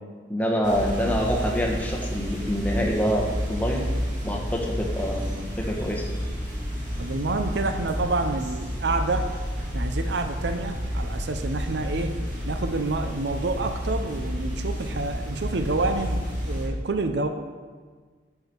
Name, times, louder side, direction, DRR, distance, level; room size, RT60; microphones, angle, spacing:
voice 1, 0.3-3.8 4.2-6.1, equal, 10° left, 0 dB, 1.1 m, -26 dB
sound 1, 0.6-16.7, equal, 45° right, 2.0 m, -30 dB
voice 2, 7.0-9.3 9.7-12.1 12.5-17.3, right 3 dB, 65° right, 7 dB, 0.6 m, -28 dB
10.5 x 5.7 x 4.5 m, 1.5 s
head